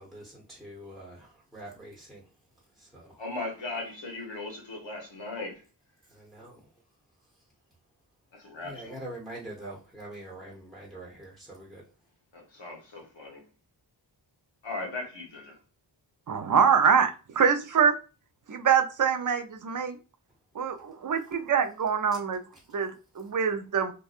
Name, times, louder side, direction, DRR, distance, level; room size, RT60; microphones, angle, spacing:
voice 1, 0.0-3.2 6.1-6.8 7.2-7.5 8.6-11.8 22.6-22.8, right 1 dB, ahead, 1.0 m, -45 dB
voice 2, 3.2-5.6 8.3-9.0 12.3-13.4 14.6-15.6, left 2 dB, 75° left, 1.0 m, -38 dB
voice 3, 16.3-17.9 18.5-20.0 20.5-22.4 22.7-23.9, right 7 dB, 45° right, 0.5 m, -24 dB
2.7 x 2.2 x 2.4 m
wide cardioid pair, 55°, 45 cm